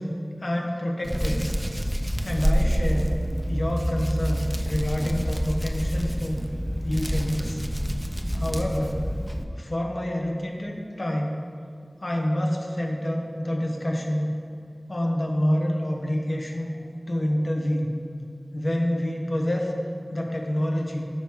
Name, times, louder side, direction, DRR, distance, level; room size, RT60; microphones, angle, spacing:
voice 1, 0.4-1.5 2.2-3.1 3.5-6.4 6.8-7.6 8.3-9.0 9.6-11.4 12.0-14.3 14.9-16.7 17.1-17.9 18.5-19.7 20.1-21.1, equal, 60° left, 0 dB, 1.1 m, -27 dB
Hands, 1.0-9.4, equal, 10° right, 0.7 m, -27 dB
13.0 x 4.6 x 3.8 m, 2.3 s
wide cardioid pair, 50°, 0 cm